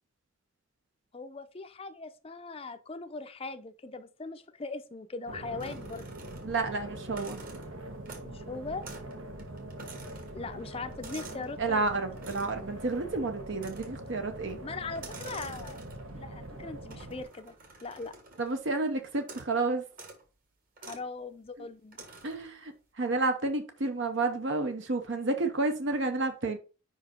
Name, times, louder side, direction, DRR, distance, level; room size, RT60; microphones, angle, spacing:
voice 1, 1.1-6.1 8.2-8.8 10.3-11.9 14.6-15.8 16.1-17.6 17.8-18.1 20.8-22.0, left 3 dB, 30° left, 0.5 m, -40 dB
sound 1, 5.3-17.2, right 1 dB, 80° right, 1.2 m, -43 dB
sound 2, 5.6-6.7 7.0-8.4 8.8-9.1 9.4-11.5 12.2-12.7 13.6-14.1 14.9-16.2 16.9-18.6 19.2-19.6 19.9-20.2 20.8-21.1 21.9-22.5, right 3 dB, 45° right, 1.6 m, -49 dB
voice 2, 6.4-7.4 11.6-14.6 18.4-19.8 21.6-21.7 22.2-26.6, right 3 dB, 60° right, 0.8 m, -30 dB
5.2 x 4.9 x 4.3 m
head